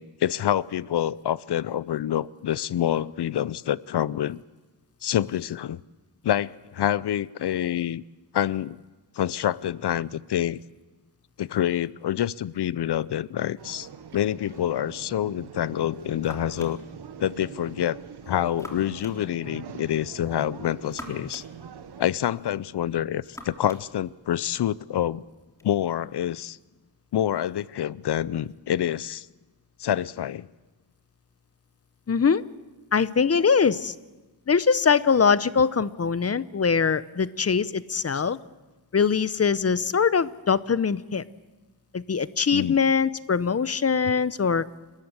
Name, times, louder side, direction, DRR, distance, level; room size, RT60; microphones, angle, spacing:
voice 1, 0.0-4.4 5.0-5.8 6.2-8.0 8.3-8.8 9.1-10.6 11.4-13.9 14.1-16.8 17.2-18.0 18.3-21.4 22.0-25.2 25.6-26.6 27.1-29.3 29.8-30.5 38.1-38.2 42.5-42.8, left 11 dB, 75° left, 20 dB, 0.6 m, -27 dB
sound 1, 13.6-22.0, right 7 dB, 75° right, 1.2 m, -44 dB
sound 2, 15.6-25.7, left 1 dB, 5° left, 3.4 m, -49 dB
voice 2, 32.1-32.4 32.9-33.9 34.5-38.4 38.9-41.2 41.9-44.7, left 6 dB, 35° left, 17 dB, 0.7 m, -22 dB
29.5 x 13.5 x 8.0 m, 1.2 s
wide cardioid pair, 90°, 40 cm